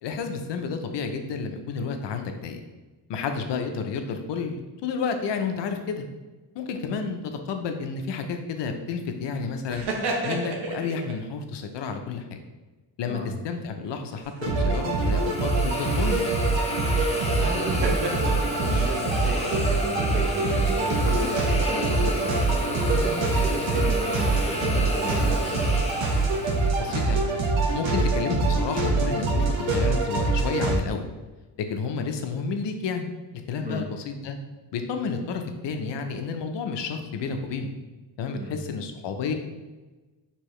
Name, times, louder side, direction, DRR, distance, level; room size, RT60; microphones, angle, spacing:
voice 1, 0.0-2.6 3.1-6.1 6.6-9.9 10.2-12.4 13.0-16.2 26.8-27.3 27.7-31.0 31.6-33.1 33.5-34.4 34.7-37.7 38.2-39.3, left 5 dB, 70° left, 6 dB, 0.7 m, -31 dB
sound 1, 9.7-11.1 14.2-14.8 17.4-19.0, right 2 dB, 65° right, 0.8 m, -32 dB
sound 2, 14.4-30.8, right 3 dB, 90° right, 0.8 m, -24 dB
Hiss, 14.8-26.9, left 1 dB, 15° left, 0.6 m, -32 dB
voice 2, 16.9-22.3 22.7-25.2 33.6-33.9 38.4-38.5, right 1 dB, 20° right, -2 dB, 0.7 m, -34 dB
4.6 x 3.0 x 3.1 m, 1.2 s
cardioid pair, 100°, 44 cm